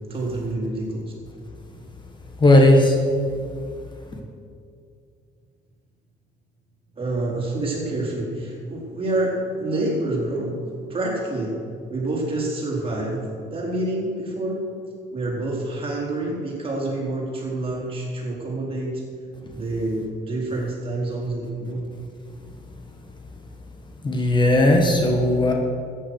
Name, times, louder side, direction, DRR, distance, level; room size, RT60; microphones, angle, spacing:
voice 1, 0.1-1.1 7.0-10.6 10.9-11.5 11.9-14.6 15.1-19.0 19.5-21.8, right 2 dB, 35° right, -3 dB, 4.2 m, -27 dB
voice 2, 2.4-3.0 24.0-25.5, left 1 dB, 25° left, 2 dB, 1.6 m, -16 dB
13.5 x 9.8 x 6.4 m, 2.4 s
cardioid pair, 110°, 17 cm